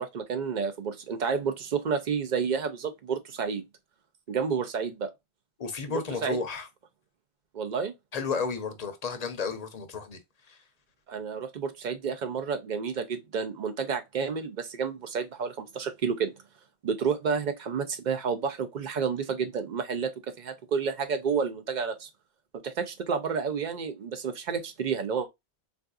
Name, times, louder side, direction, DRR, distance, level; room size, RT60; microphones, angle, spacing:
voice 1, 0.0-3.6 4.3-5.1 5.9-6.4 7.5-7.9 11.1-16.3 16.8-20.1 20.4-22.1 22.6-25.3, right 6 dB, 55° right, 0.6 m, -30 dB
voice 2, 5.6-6.7 8.1-10.2 10.5-10.6, left 4 dB, 45° left, 0.6 m, -32 dB
3.6 x 2.5 x 2.3 m
omnidirectional pair, 1.1 m